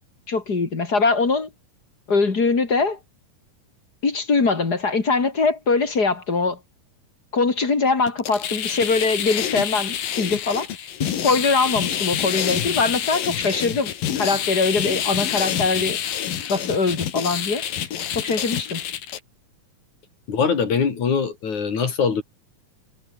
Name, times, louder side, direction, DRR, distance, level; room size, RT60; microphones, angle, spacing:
voice 1, 0.3-1.5 2.1-3.0 4.0-6.6 7.3-16.0 16.5-17.6 18.1-18.8, left 4 dB, 30° left, 3.0 m, -22 dB
sound 1, 8.1-19.2, left 10 dB, 80° left, 3.9 m, -27 dB
voice 2, 20.3-22.2, left 6 dB, 60° left, 4.6 m, -22 dB
omnidirectional pair, 3.9 m